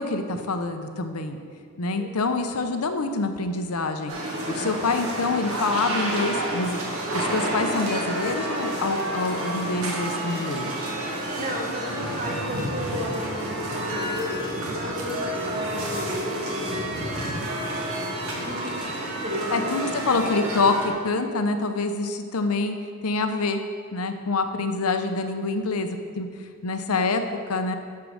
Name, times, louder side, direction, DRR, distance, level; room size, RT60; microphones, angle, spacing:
voice 1, 0.0-1.4 1.8-4.1 4.5-6.8 7.1-10.8 19.5-22.8 23.0-23.6 23.9-26.3 26.6-27.2 27.5-27.7, left 3 dB, 85° left, 7 dB, 0.8 m, -26 dB
voice 2, 2.0-2.3 11.1-17.3 17.9-19.5, equal, 35° right, 0 dB, 1.4 m, -34 dB
sound 1, 4.1-20.9, right 1 dB, 75° right, 1.9 m, -30 dB
11.5 x 4.7 x 6.4 m, 2.2 s
head